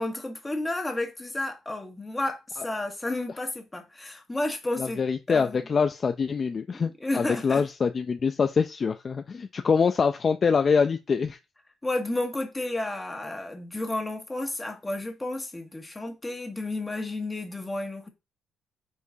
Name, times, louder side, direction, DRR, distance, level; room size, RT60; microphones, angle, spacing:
voice 1, 0.0-5.6 6.7-7.6 11.8-18.1, left 2 dB, 15° left, 1.7 m, -32 dB
voice 2, 4.8-11.4, left 5 dB, 40° left, 0.5 m, -25 dB
8.2 x 4.5 x 2.9 m
cardioid pair, 90°, 0 cm